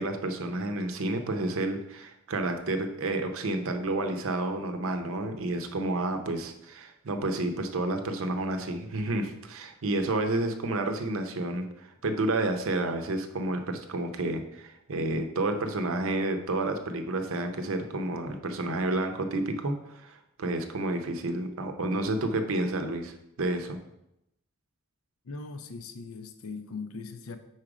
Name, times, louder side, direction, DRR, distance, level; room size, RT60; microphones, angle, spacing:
voice 1, 0.0-23.8, right 2 dB, 65° right, 6 dB, 0.7 m, -30 dB
voice 2, 25.3-27.4, left 4 dB, 75° left, 9 dB, 0.6 m, -40 dB
4.8 x 4.3 x 4.9 m, 0.83 s
head